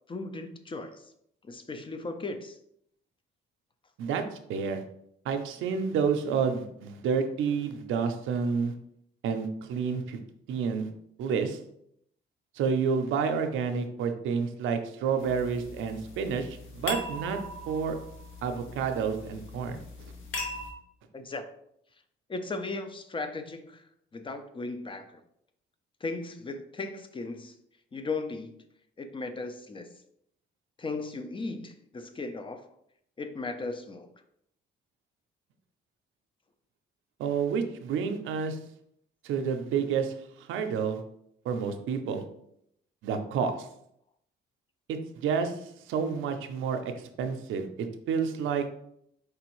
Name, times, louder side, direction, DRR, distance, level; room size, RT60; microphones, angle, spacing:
voice 1, 0.1-1.0 1.4-2.6 21.1-21.5 22.3-23.8 24.1-25.2 26.0-27.5 27.9-28.5 29.0-29.9 30.8-32.6 33.2-34.1, left 3 dB, 25° left, 8 dB, 0.6 m, -36 dB
voice 2, 4.0-4.8 5.2-8.7 9.2-10.2 10.5-10.9 11.2-11.6 12.6-17.4 17.7-18.0 18.4-19.8 37.2-38.6 39.2-41.0 41.4-42.2 43.0-43.7 44.9-48.7, right 6 dB, 85° right, 6 dB, 0.6 m, -29 dB
sound 1, 15.2-20.7, left 1 dB, 80° left, 0.9 m, -40 dB
4.9 x 3.3 x 3.1 m, 0.73 s
cardioid pair, 90°, 20 cm